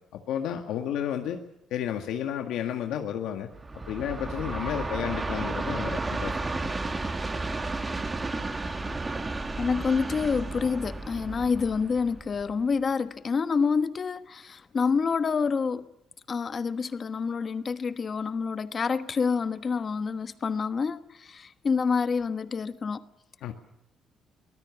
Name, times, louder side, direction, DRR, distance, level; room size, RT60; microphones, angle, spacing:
voice 1, 0.1-1.4 1.7-3.5 3.9-6.7 23.4-23.5, left 9 dB, 85° left, 1.9 m, -32 dB
Train, 3.5-12.7, right 3 dB, 20° right, 1.7 m, -33 dB
voice 2, 9.6-15.9 16.3-23.0, left 5 dB, 35° left, 1.2 m, -27 dB
24.0 x 19.5 x 7.3 m
cardioid pair, 145°, 0 cm